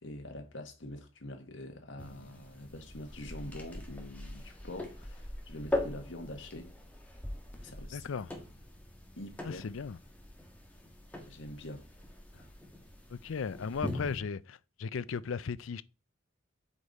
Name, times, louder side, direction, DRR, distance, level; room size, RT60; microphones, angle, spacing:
voice 1, 0.0-6.7 7.6-8.1 9.2-9.6 11.3-11.8 12.3-12.4, left 1 dB, 70° left, 1.6 m, -45 dB
sound 1, 2.0-14.2, left 1 dB, 10° left, 1.5 m, -41 dB
voice 2, 7.9-8.3 9.4-10.0 13.1-15.8, left 5 dB, 90° left, 0.5 m, -36 dB
8.2 x 5.1 x 4.2 m
head